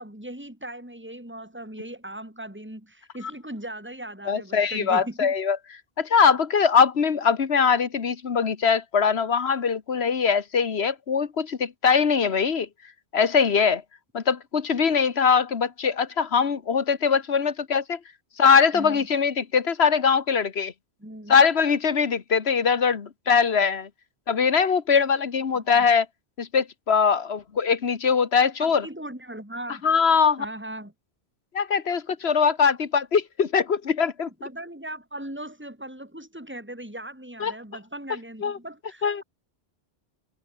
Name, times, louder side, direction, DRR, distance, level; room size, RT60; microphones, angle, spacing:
voice 1, 0.0-5.3 18.7-19.1 21.0-21.3 25.5-25.9 28.6-29.9 30.4-30.9 32.2-32.3 34.4-39.2, right 1 dB, 10° right, 4.4 m, -38 dB
voice 2, 4.3-5.6 6.0-12.7 13.1-13.8 14.1-18.0 18.4-20.7 21.3-23.9 24.3-26.1 26.4-28.8 29.8-30.4 31.5-34.3 37.4-37.5 38.4-38.6 39.0-39.2, left 6 dB, 75° left, 1.6 m, -22 dB
omnidirectional pair, 1.1 m